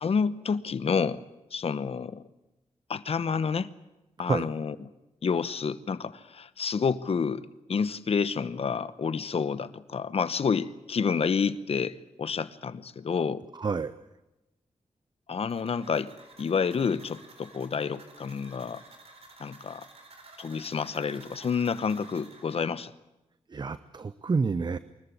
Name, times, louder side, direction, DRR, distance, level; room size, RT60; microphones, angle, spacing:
voice 1, 0.0-1.2 1.5-2.2 2.9-3.7 4.2-4.7 5.2-7.4 7.7-13.5 15.3-16.1 16.4-18.8 19.4-19.9 20.4-22.9, left 6 dB, 60° left, 15 dB, 0.9 m, -29 dB
voice 2, 13.5-13.9 23.5-24.8, right 4 dB, 40° right, 14 dB, 0.7 m, -28 dB
sound 1, 15.5-22.6, right 3 dB, 60° right, 4.6 m, -52 dB
23.5 x 14.5 x 10.0 m, 0.98 s
wide cardioid pair, 100°, 12 cm